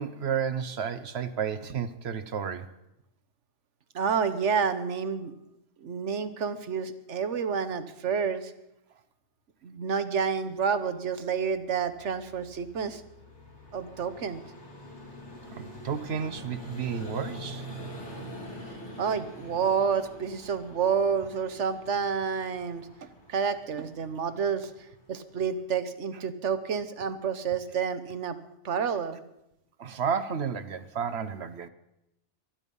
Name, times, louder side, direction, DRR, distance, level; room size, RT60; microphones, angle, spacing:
voice 1, 0.0-2.7 15.5-17.6 29.8-31.7, right 7 dB, 65° right, 12 dB, 1.1 m, -32 dB
voice 2, 3.9-5.3 5.8-8.5 9.6-13.0 13.7-14.4 19.0-22.9 23.3-24.7 25.1-28.4 28.6-29.2, right 6 dB, 90° right, 11 dB, 1.4 m, -29 dB
Vehicle, 11.0-25.7, equal, 75° left, 3.0 m, -45 dB
23.0 x 10.0 x 5.4 m, 0.87 s
omnidirectional pair, 1.2 m